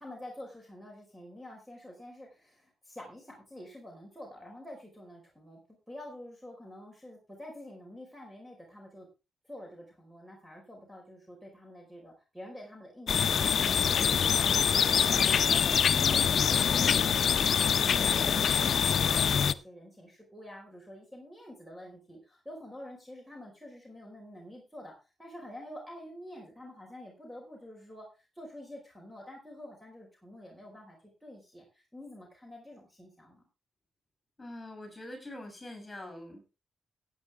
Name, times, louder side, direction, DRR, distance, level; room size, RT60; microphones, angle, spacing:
voice 1, 0.0-5.6 5.9-9.1 9.4-14.8 15.1-24.9 25.2-33.4, left 1 dB, 5° right, 0 dB, 4.7 m, -48 dB
sound 1, 13.1-19.5, left 7 dB, 65° left, 0.6 m, -25 dB
voice 2, 34.4-36.4, left 1 dB, 20° left, 5 dB, 7.2 m, -44 dB
14.5 x 9.3 x 3.5 m, 0.28 s
cardioid pair, 85°, 0 cm